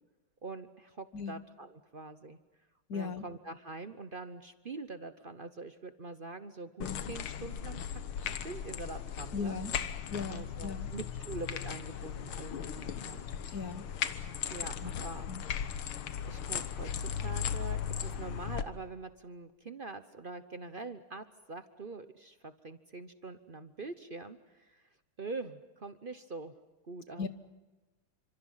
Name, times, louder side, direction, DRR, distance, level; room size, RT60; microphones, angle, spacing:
voice 1, 0.4-2.4 2.9-7.8 8.2-9.6 10.3-13.3 14.5-15.3 16.3-24.8 25.2-26.5 26.9-27.3, right 3 dB, 55° right, 10 dB, 0.6 m, -44 dB
voice 2, 2.9-3.2 9.3-9.7 10.1-10.9 13.5-13.9 14.8-14.9 15.3-15.4 27.2-27.3, left 5 dB, 50° left, 10 dB, 1.6 m, -37 dB
sound 1, 6.8-18.6, left 8 dB, 75° left, 2.0 m, -37 dB
29.5 x 26.0 x 5.7 m, 1.2 s
omnidirectional pair, 2.4 m